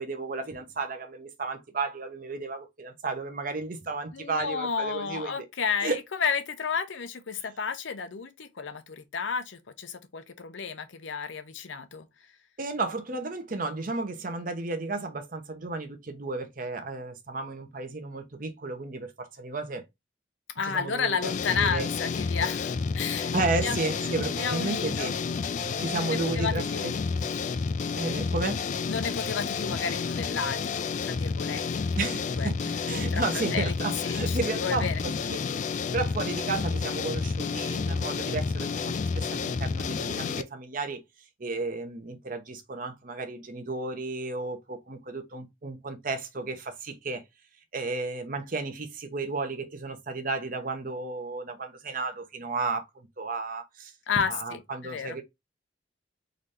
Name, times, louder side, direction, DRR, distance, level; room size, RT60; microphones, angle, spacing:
voice 1, 0.0-5.5 5.8-6.0 7.4-7.5 12.6-19.8 20.6-21.9 23.3-25.2 25.8-26.9 27.9-28.6 32.0-41.0 41.4-47.2 47.7-53.9 54.3-55.2, right 3 dB, 45° right, 0.8 m, -33 dB
voice 2, 4.1-5.9 6.2-12.1 20.6-23.3 23.6-23.8 24.4-25.1 25.9-26.9 28.9-31.8 32.4-32.5 33.1-33.2 33.5-33.7 34.0-35.0 54.1-55.2, left 6 dB, 85° left, 0.6 m, -32 dB
sound 1, 21.2-40.4, left 5 dB, 40° left, 0.3 m, -30 dB
4.0 x 2.7 x 3.2 m
head